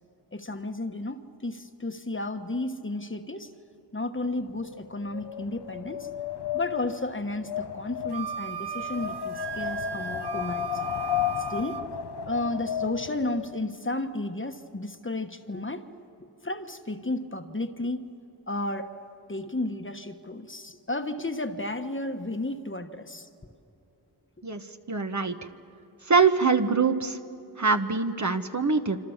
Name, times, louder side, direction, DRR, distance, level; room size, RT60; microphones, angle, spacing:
voice 1, 0.3-3.5 3.9-6.1 6.5-10.8 11.5-11.8 12.3-15.8 16.4-18.1 18.5-18.9 19.3-23.3, left 2 dB, 30° left, 7 dB, 1.2 m, -33 dB
Wind, 4.4-13.6, left 10 dB, 70° left, 0.7 m, -34 dB
Wind instrument woodwind instrument, 8.1-11.8, right 8 dB, 75° right, 0.9 m, -36 dB
voice 2, 24.9-25.3 26.1-27.2 27.6-29.0, right 4 dB, 45° right, 6 dB, 1.2 m, -23 dB
26.5 x 26.5 x 7.3 m, 3.0 s
wide cardioid pair, 80°, 41 cm